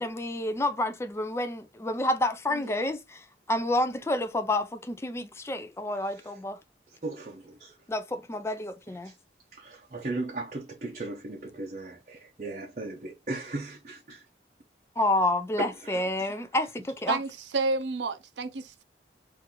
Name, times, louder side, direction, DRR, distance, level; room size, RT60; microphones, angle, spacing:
voice 1, 0.0-6.6 7.9-9.1 15.0-17.2, left 1 dB, 15° left, 0.3 m, -29 dB
voice 2, 2.5-2.9 17.1-18.8, right 3 dB, 85° right, 0.6 m, -31 dB
voice 3, 5.9-6.4 6.9-7.8 9.0-9.2 9.5-14.3 15.6-16.5, right 2 dB, 40° right, 0.6 m, -37 dB
2.8 x 2.6 x 3.7 m
head